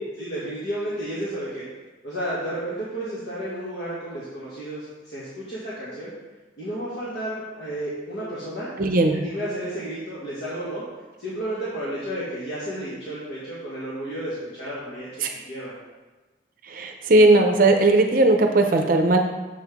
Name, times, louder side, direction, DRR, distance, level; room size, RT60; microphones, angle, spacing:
voice 1, 0.2-1.6 2.0-6.1 6.6-8.7 9.1-10.8 11.2-15.7, right 1 dB, 70° left, -9 dB, 1.7 m, -32 dB
voice 2, 8.8-9.2 15.2-15.3 16.7-19.2, right 2 dB, 50° right, 4 dB, 0.6 m, -17 dB
7.6 x 5.6 x 3.5 m, 1.2 s
head